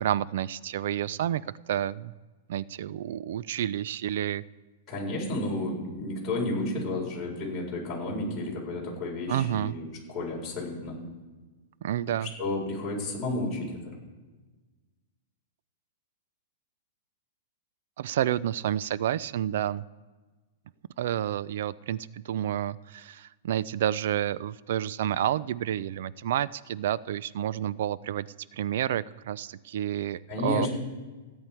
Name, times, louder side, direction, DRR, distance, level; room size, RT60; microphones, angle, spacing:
voice 1, 0.0-1.4 1.7-2.1 2.5-4.4 9.3-9.7 11.8-12.3 18.0-19.8 21.0-28.3 28.5-30.7, right 11 dB, 60° right, 20 dB, 0.3 m, -29 dB
voice 2, 4.9-11.0 12.2-13.9 30.3-30.7, left 2 dB, 15° left, -6 dB, 4.5 m, -32 dB
16.5 x 8.7 x 4.5 m, 1.3 s
supercardioid pair, 160°, 0 cm